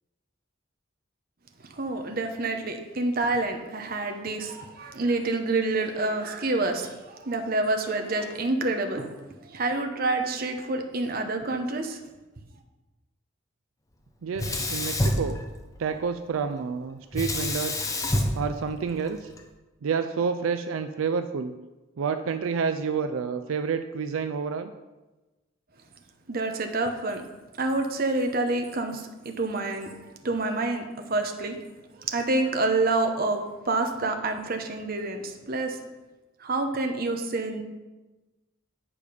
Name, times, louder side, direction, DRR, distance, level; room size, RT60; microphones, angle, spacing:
voice 1, 1.7-9.1 9.4-12.0 26.3-27.2 27.6-31.6 32.0-35.8 36.4-37.6, right 2 dB, 45° right, 5 dB, 0.8 m, -28 dB
voice 2, 14.2-15.4 15.8-17.8 18.3-19.3 19.8-21.6 22.0-24.7, right 6 dB, 85° right, 9 dB, 0.4 m, -29 dB
Sink (filling or washing), 14.4-16.0 17.1-19.4, left 1 dB, 15° left, 0.7 m, -28 dB
8.6 x 4.9 x 5.0 m, 1.1 s
head